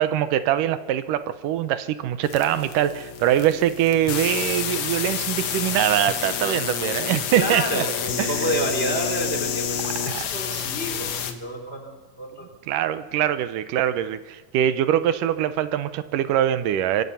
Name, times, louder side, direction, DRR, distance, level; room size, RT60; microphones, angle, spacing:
voice 1, 0.0-7.8 8.2-8.5 10.1-10.3 12.7-17.0, right 11 dB, 85° right, 12 dB, 2.5 m, -23 dB
sound 1, 2.2-11.3, left 8 dB, 65° left, 2.7 m, -29 dB
voice 2, 7.3-12.5, right 1 dB, 20° left, 3 dB, 3.7 m, -29 dB
25.0 x 23.5 x 5.7 m, 1.4 s
omnidirectional pair, 3.7 m